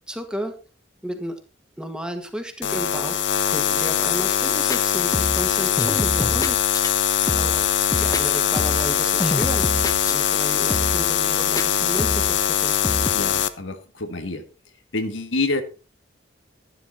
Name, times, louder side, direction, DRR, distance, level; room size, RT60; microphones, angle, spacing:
voice 1, 0.1-0.6 1.0-1.4 1.8-6.6 7.4-7.7 8.0-9.7 10.0-12.8, equal, 5° right, 1.8 m, -33 dB
sound 1, 2.6-13.5, left 9 dB, 70° left, 0.9 m, -22 dB
sound 2, 4.5-4.8 5.1-5.5 5.8-6.9 7.3-7.7 7.9-8.9 9.2-10.4 10.7-11.1 11.6-12.4 12.8-13.1, left 1 dB, 20° left, 0.9 m, -27 dB
voice 2, 13.0-14.5 14.9-15.6, left 2 dB, 85° left, 1.9 m, -27 dB
12.0 x 11.0 x 4.2 m
head